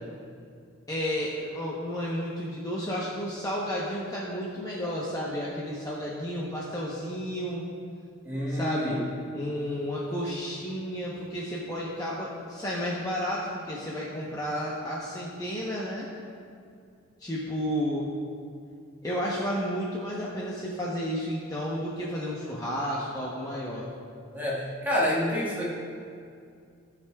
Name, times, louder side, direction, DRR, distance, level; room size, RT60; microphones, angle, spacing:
voice 1, 0.9-7.6 8.5-9.0 9.3-16.1 17.2-18.1 19.0-23.9, equal, 15° left, -5 dB, 0.8 m, -32 dB
voice 2, 8.2-9.0 24.3-25.6, left 1 dB, 10° right, -7 dB, 1.6 m, -28 dB
16.5 x 6.0 x 2.3 m, 2.4 s
head